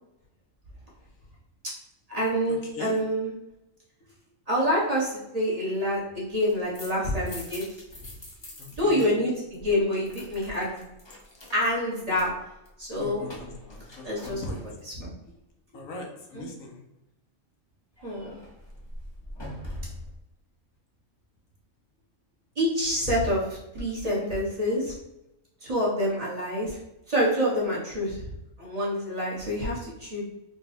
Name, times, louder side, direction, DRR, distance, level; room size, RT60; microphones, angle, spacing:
voice 1, 2.1-3.3 4.5-7.7 8.8-10.8 11.5-12.3 12.8-13.2 14.0-14.4 14.8-15.1 16.3-16.4 18.0-18.4 22.6-23.4 23.7-24.9 25.6-26.8 27.1-28.2 28.6-30.2, equal, 30° right, -6 dB, 1.2 m, -27 dB
sound 1, 6.4-9.1 9.3-14.9 18.0-20.2, left 1 dB, 30° left, 0.5 m, -44 dB
voice 2, 8.6-9.1 13.0-14.6 15.7-16.8, left 2 dB, 80° left, 0 dB, 1.2 m, -39 dB
3.8 x 2.3 x 4.1 m, 0.89 s
omnidirectional pair, 1.4 m